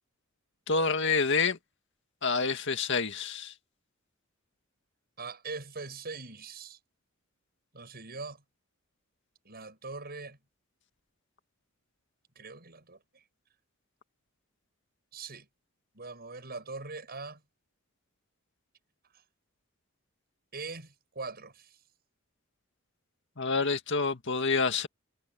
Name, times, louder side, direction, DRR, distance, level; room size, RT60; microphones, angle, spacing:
voice 1, 0.7-1.6 2.2-3.5 23.4-24.9, left 4 dB, 60° left, 2.0 m, -27 dB
voice 2, 5.2-6.8 7.7-8.4 9.4-10.4 12.4-13.2 15.1-15.5 15.9-17.4 19.1-19.2 20.5-21.8, right 4 dB, 50° right, 8.0 m, -42 dB
head